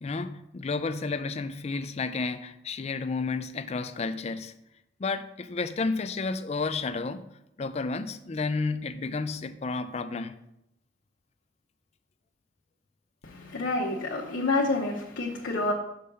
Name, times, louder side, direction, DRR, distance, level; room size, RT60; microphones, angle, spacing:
voice 1, 0.0-4.5 5.0-7.2 7.6-10.3, left 4 dB, 35° left, 10 dB, 0.4 m, -31 dB
voice 2, 13.2-15.7, left 2 dB, 80° left, -3 dB, 0.9 m, -28 dB
5.6 x 5.2 x 5.3 m, 0.83 s
head